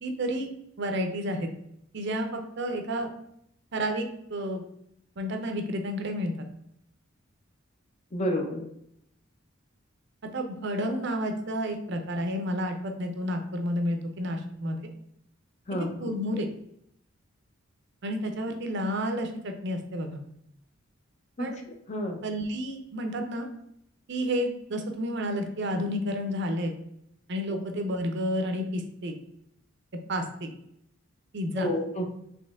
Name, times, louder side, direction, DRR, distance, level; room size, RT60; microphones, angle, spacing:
voice 1, 0.0-0.5 0.8-1.5 1.9-3.1 3.7-4.6 5.2-6.4 10.3-14.9 16.0-16.5 18.0-20.2 21.4-21.6 22.2-23.5 24.1-26.7 27.3-29.1 30.1-30.5 31.3-31.7, equal, 55° right, 5 dB, 0.6 m, -30 dB
voice 2, 8.1-8.7 15.7-15.9 21.4-22.2 27.5-27.6 31.6-32.1, equal, 35° left, 3 dB, 0.6 m, -30 dB
4.2 x 2.9 x 3.5 m, 0.75 s
head